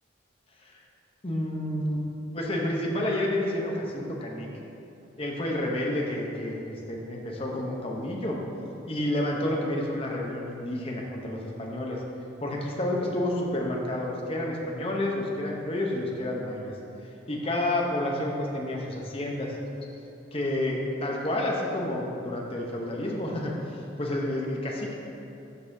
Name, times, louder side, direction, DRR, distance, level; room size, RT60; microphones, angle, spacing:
voice 1, 1.2-2.0 2.3-4.5 5.2-8.4 8.9-12.0 12.4-16.7 17.3-19.5 20.3-23.5 24.0-24.9, left 1 dB, 30° left, -1 dB, 0.7 m, -30 dB
11.0 x 5.4 x 2.7 m, 2.8 s
head